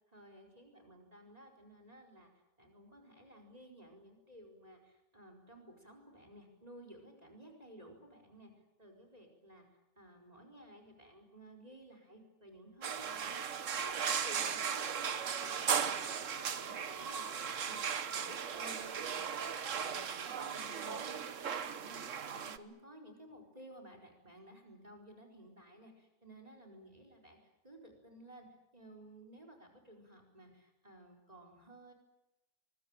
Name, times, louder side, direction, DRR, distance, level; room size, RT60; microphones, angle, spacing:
voice 1, 0.1-2.3 2.6-8.5 8.8-9.7 10.0-27.4 27.6-28.5 28.7-31.9, right 1 dB, 25° right, 4 dB, 4.8 m, -55 dB
sound 1, 12.8-22.6, right 7 dB, 60° right, 1.4 m, -37 dB
24.5 x 22.0 x 9.0 m, 0.95 s
omnidirectional pair, 1.5 m